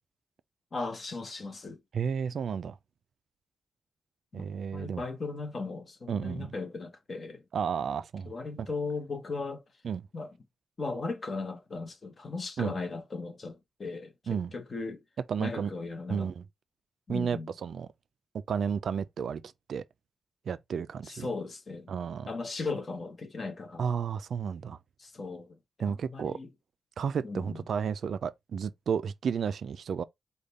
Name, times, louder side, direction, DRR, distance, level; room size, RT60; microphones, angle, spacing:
voice 1, 0.7-1.8 4.3-4.4 4.7-7.4 8.2-9.6 10.1-10.3 10.8-15.0 15.4-16.3 17.1-17.5 21.0-21.9 22.2-23.9 25.0-25.6 25.9-26.5 27.2-27.6, left 3 dB, 30° left, 0.9 m, -37 dB
voice 2, 1.9-2.8 4.3-5.0 6.1-6.5 7.5-8.3 8.6-8.7 9.8-10.0 12.6-12.7 14.3-14.5 15.3-15.7 16.1-16.4 17.1-17.9 18.5-19.4 19.7-19.8 20.5-21.3 21.9-22.3 23.8-24.8 25.8-26.4 27.0-30.0, right 7 dB, 60° right, 0.3 m, -32 dB
5.0 x 2.3 x 4.0 m
wide cardioid pair, 155°, 0 cm